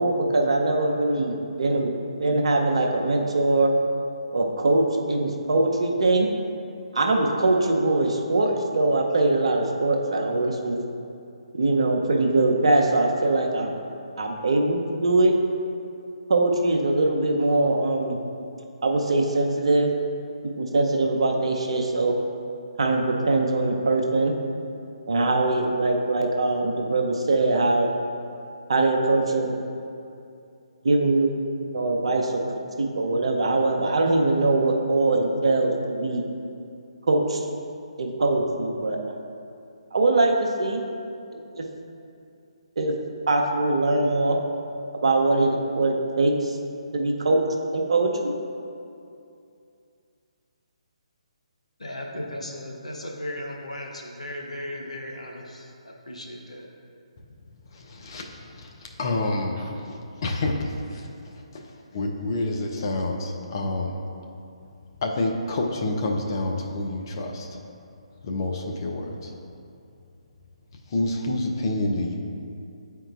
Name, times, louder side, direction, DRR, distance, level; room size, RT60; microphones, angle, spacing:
voice 1, 0.0-1.9 2.2-3.7 4.3-6.3 6.9-10.8 11.5-13.7 14.2-15.3 16.3-18.2 18.8-19.9 20.4-22.1 22.8-24.3 25.1-27.9 28.7-29.5 30.8-32.4 32.8-36.2 37.1-37.5 38.0-39.0 39.9-40.8 41.3-41.6 42.8-42.9 43.3-44.4 45.0-46.6 46.9-47.4 47.7-48.3, right 2 dB, 55° right, 2 dB, 0.7 m, -22 dB
voice 2, 51.8-56.7, left 1 dB, 75° left, 0 dB, 0.8 m, -36 dB
voice 3, 57.7-64.0 65.0-67.6 68.2-69.3 70.9-72.2, left 2 dB, 40° left, 1 dB, 0.6 m, -28 dB
8.7 x 4.6 x 2.4 m, 2.6 s
figure-of-eight pair, 140°, 3 cm